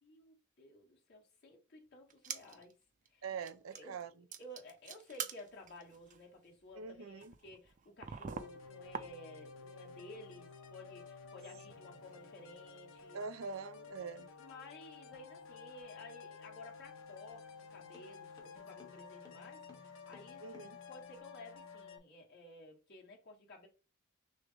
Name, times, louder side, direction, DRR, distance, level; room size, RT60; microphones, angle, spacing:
voice 1, 0.0-2.8 3.1-3.2 3.7-13.2 14.4-20.4 20.9-23.7, left 2 dB, 55° left, 1.6 m, -54 dB
sound 1, 2.1-2.7 3.1-3.2 3.4-4.0 4.3-9.6 9.9-10.6 10.9-11.0 11.5-13.7 14.1-14.2, right 7 dB, 40° right, 0.4 m, -48 dB
voice 2, 3.2-4.1 6.8-7.3 13.1-14.3 20.4-20.8, right 5 dB, 90° right, 0.5 m, -43 dB
sound 2, 8.3-22.0, left 5 dB, 70° left, 0.8 m, -53 dB
sound 3, 16.6-21.2, left 3 dB, 20° left, 0.9 m, -63 dB
6.1 x 2.1 x 3.4 m
head